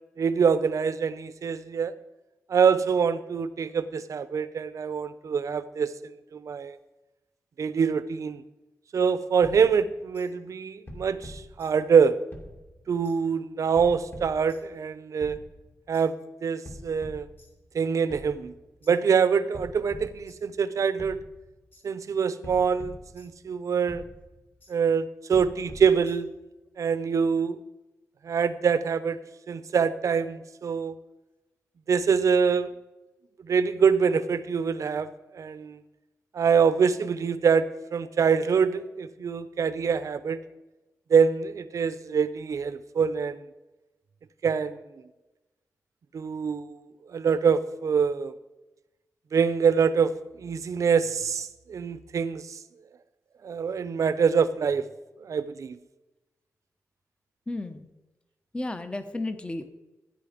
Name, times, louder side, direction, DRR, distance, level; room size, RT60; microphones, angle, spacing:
voice 1, 0.2-1.9 2.5-6.8 7.6-8.4 8.9-12.2 12.9-15.4 15.9-16.1 16.4-17.3 17.7-18.5 18.9-21.2 21.8-24.0 24.7-26.3 26.8-27.6 28.2-29.2 29.5-30.9 31.9-32.7 33.4-35.1 35.3-35.8 36.3-40.4 41.1-43.4 44.4-44.8 46.1-46.8 47.1-48.3 49.3-50.1 50.4-52.6 53.4-54.8 55.2-55.8, right 6 dB, 65° right, 13 dB, 0.8 m, -25 dB
sound 1, 9.4-10.3 10.9-12.0 12.3-13.2 13.8-14.9 15.2-16.1 16.7-17.8 18.1-19.0 19.5-20.7 21.0-21.9 22.4-23.6 23.9-24.8 25.3-26.5, left 1 dB, 35° left, 2.2 m, -46 dB
voice 2, 57.5-57.9 58.5-59.7, left 2 dB, 20° left, 9 dB, 1.0 m, -33 dB
15.5 x 10.0 x 5.2 m, 1.1 s
wide cardioid pair, 145°, 6 cm